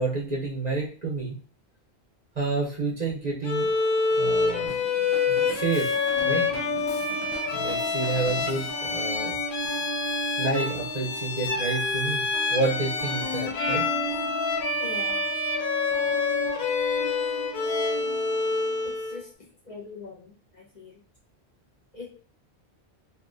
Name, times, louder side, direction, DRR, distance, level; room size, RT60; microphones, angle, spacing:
voice 1, 0.0-1.4 2.4-3.7 4.2-4.7 5.3-5.9 6.2-6.4 7.5-9.4 10.4-13.9, right 3 dB, 45° right, -3 dB, 0.8 m, -29 dB
Bowed string instrument, 3.4-19.2, left 4 dB, 60° left, 0.7 m, -27 dB
Drum kit, 4.7-8.8, left 2 dB, 80° left, 1.0 m, -43 dB
sound 1, 5.9-18.9, equal, 25° left, 0.4 m, -37 dB
voice 2, 14.8-15.2 18.8-21.0 21.9-22.1, left 4 dB, 40° left, -5 dB, 1.1 m, -42 dB
3.3 x 2.4 x 2.5 m, 0.40 s
omnidirectional pair, 1.1 m